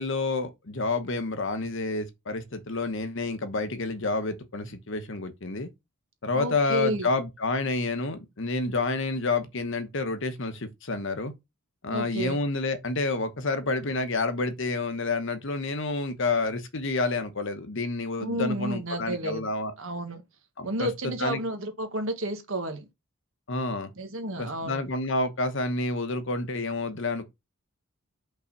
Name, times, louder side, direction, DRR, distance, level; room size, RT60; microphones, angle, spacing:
voice 1, 0.0-5.7 6.2-11.3 11.8-19.7 20.6-21.4 23.5-23.9 24.4-27.3, left 3 dB, 55° left, 1.0 m, -29 dB
voice 2, 6.3-7.1 11.9-12.4 18.2-19.5 19.8-20.2 20.6-22.9 24.0-24.8, right 1 dB, 60° right, 1.5 m, -31 dB
5.6 x 3.9 x 5.3 m
head